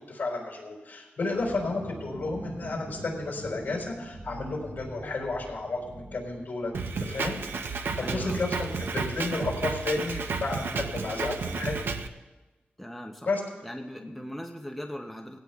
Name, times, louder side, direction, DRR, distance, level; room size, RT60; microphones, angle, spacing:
voice 1, 0.1-6.7 7.0-8.5 8.8-11.7 13.2-13.4 14.0-14.1, left 3 dB, 55° left, -2 dB, 4.3 m, -32 dB
sound 1, 1.3-7.3, right 1 dB, 55° right, 1.3 m, -42 dB
Drum kit, 6.7-12.1, right 4 dB, 85° right, 0.7 m, -32 dB
voice 2, 8.0-8.4 12.8-13.3 13.6-15.4, equal, ahead, 2 dB, 0.7 m, -39 dB
19.5 x 16.5 x 2.4 m, 1.2 s
wide cardioid pair, 150°, 4 cm